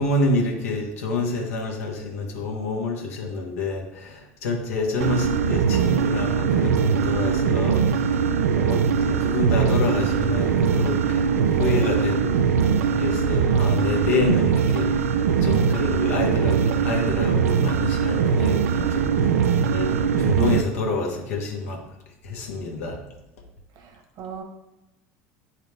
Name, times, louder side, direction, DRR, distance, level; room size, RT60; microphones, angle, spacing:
voice 1, 0.0-8.1 8.6-12.4 12.9-14.9 15.4-19.1 19.7-21.8 22.2-23.0, left 3 dB, 80° left, 1 dB, 1.4 m, -27 dB
sound 1, 5.0-20.6, right 6 dB, 90° right, 0.4 m, -21 dB
voice 2, 11.5-11.9 23.7-24.4, right 5 dB, 55° right, 4 dB, 1.3 m, -37 dB
9.2 x 4.0 x 3.4 m, 0.94 s
hypercardioid pair, 85°, 8 cm